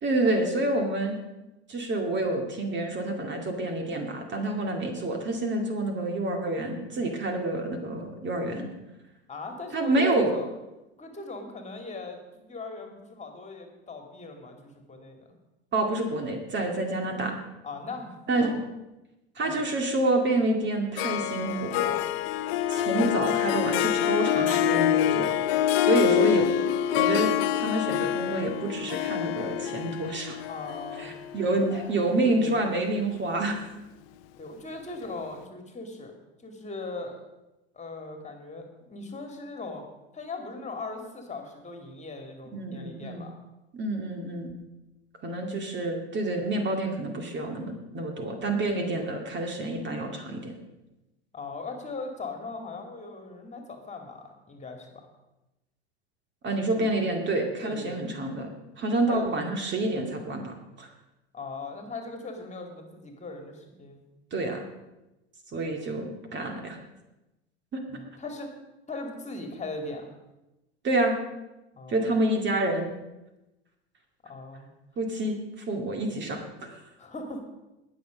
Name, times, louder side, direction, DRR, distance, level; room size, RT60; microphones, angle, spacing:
voice 1, 0.0-1.2 1.7-8.7 9.7-10.3 15.7-17.4 18.3-18.5 19.4-22.0 22.7-25.4 25.8-26.5 27.0-30.4 31.0-33.6 42.5-43.3 43.7-44.5 45.2-50.5 56.4-58.5 58.8-60.9 64.3-64.7 65.5-66.8 67.7-67.8 70.8-71.1 71.9-72.9 75.0-75.4 75.7-76.8, right 2 dB, 35° right, 3 dB, 2.2 m, -28 dB
voice 2, 9.3-10.5 11.0-15.3 17.6-18.5 19.4-19.6 30.5-31.1 31.7-32.6 34.4-36.1 36.4-37.2 37.7-39.9 40.1-43.4 51.3-54.9 56.7-56.9 57.6-58.0 59.0-59.3 61.3-64.0 67.9-68.5 68.9-70.1 71.7-72.1 74.2-74.7 77.0-77.5, left 3 dB, 20° left, 3 dB, 2.5 m, -39 dB
Harp, 21.0-32.4, left 11 dB, 60° left, 0.7 m, -26 dB
19.0 x 6.6 x 5.1 m, 0.99 s
hypercardioid pair, 80°, 33 cm